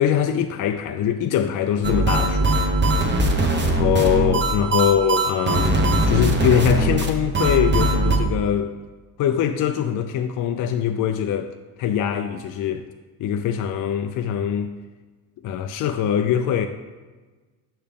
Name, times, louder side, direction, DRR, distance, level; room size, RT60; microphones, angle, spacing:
voice 1, 0.0-2.5 3.6-8.7 9.2-11.5 11.8-12.9 13.2-14.8 15.4-16.7, left 9 dB, 45° left, 0.4 m, -22 dB
sound 1, 1.8-8.2, right 2 dB, 25° right, 0.9 m, -20 dB
6.7 x 5.6 x 3.5 m
supercardioid pair, 95°, 47 cm